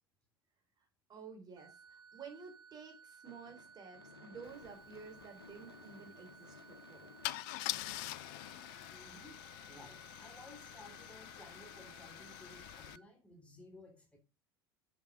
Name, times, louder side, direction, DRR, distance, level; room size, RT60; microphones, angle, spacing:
voice 1, 1.1-7.1, right 5 dB, 30° right, 4 dB, 4.1 m, -52 dB
sound 1, 1.6-13.0, right 6 dB, 60° right, 2.1 m, -59 dB
Gunshot gunfire / Fireworks, 3.3-9.5, left 5 dB, 80° left, 1.2 m, -58 dB
Car / Engine starting / Idling, 4.6-4.7 5.0-5.2 7.2-13.0, left 18 dB, 50° left, 0.4 m, -44 dB
voice 2, 8.9-14.2, left 1 dB, 10° left, 2 dB, 3.4 m, -57 dB
7.5 x 7.1 x 6.3 m, 0.30 s
figure-of-eight pair, 75°, 13 cm